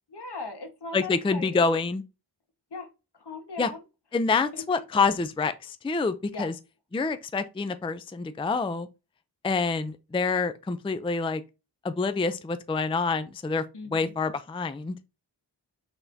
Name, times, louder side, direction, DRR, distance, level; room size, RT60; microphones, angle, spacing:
voice 1, 0.1-1.7 2.7-2.9 3.2-3.8 4.5-4.8 6.3-6.5 13.7-14.1, left 3 dB, 70° left, 1.4 m, -39 dB
voice 2, 0.9-2.0 3.6-3.7 4.1-6.5 6.9-8.9 9.4-11.4 11.8-13.6 13.9-15.0, left 4 dB, 15° left, 0.4 m, -27 dB
5.6 x 3.6 x 2.6 m
wide cardioid pair, 75°, 42 cm